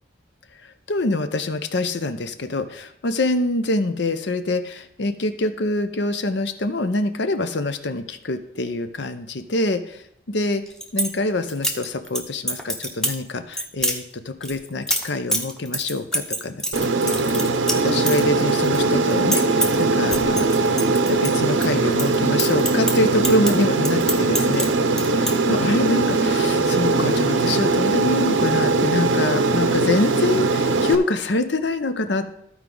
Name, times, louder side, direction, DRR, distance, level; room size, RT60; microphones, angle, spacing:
voice 1, 0.6-10.6 10.9-20.5 20.9-24.7 25.0-32.2, left 2 dB, 65° left, 10 dB, 0.7 m, -25 dB
sound 1, 10.5-11.1 11.5-12.2 12.5-13.2 13.5-14.0 14.4-18.8 19.0-19.8 20.1-21.7 21.9-24.7 24.9-25.3, right 1 dB, 5° left, 0.8 m, -25 dB
Aircraft, 16.7-30.9, right 3 dB, 80° right, 0.7 m, -20 dB
14.0 x 4.7 x 3.8 m, 0.75 s
head